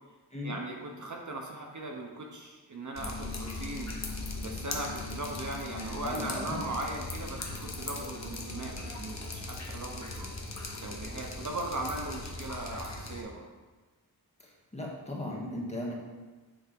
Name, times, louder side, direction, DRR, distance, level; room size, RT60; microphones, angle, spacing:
voice 1, 0.4-3.9 4.4-10.3 10.8-13.5, right 2 dB, 50° right, 1 dB, 1.0 m, -38 dB
Drip, 2.9-13.2, left 2 dB, 45° left, 1.2 m, -39 dB
voice 2, 6.0-6.6 14.4-15.9, left 1 dB, 15° left, -3 dB, 1.6 m, -37 dB
9.0 x 3.6 x 5.2 m, 1.3 s
wide cardioid pair, 100°, 38 cm